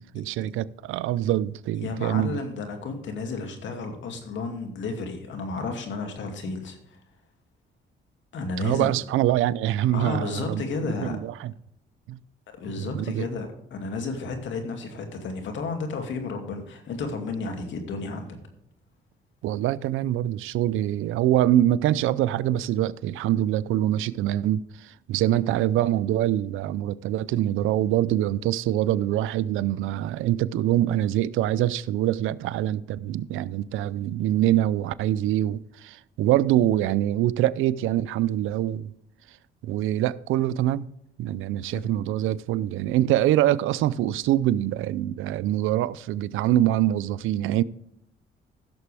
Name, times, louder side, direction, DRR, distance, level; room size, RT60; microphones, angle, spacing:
voice 1, 0.0-2.4 8.6-10.6 11.0-11.5 12.1-12.2 12.8-13.3 19.4-38.9 39.6-40.9 41.2-47.6, right 13 dB, 85° right, 0.5 m, -24 dB
voice 2, 1.8-6.8 8.3-8.9 9.9-11.2 12.6-18.4 41.7-41.9, left 3 dB, 70° left, 2.4 m, -32 dB
15.5 x 6.9 x 3.4 m
cardioid pair, 90°, 20 cm